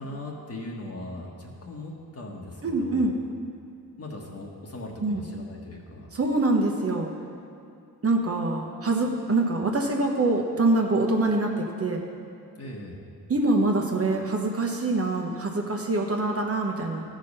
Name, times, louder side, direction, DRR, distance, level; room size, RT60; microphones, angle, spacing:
voice 1, 0.0-3.1 4.0-6.1 12.6-13.0, left 1 dB, 40° left, -1 dB, 1.4 m, -39 dB
voice 2, 2.6-3.1 5.0-5.2 6.1-7.1 8.0-12.0 13.3-17.0, right 2 dB, 40° right, 1 dB, 1.1 m, -25 dB
14.0 x 5.1 x 5.5 m, 2.5 s
wide cardioid pair, 110°, 37 cm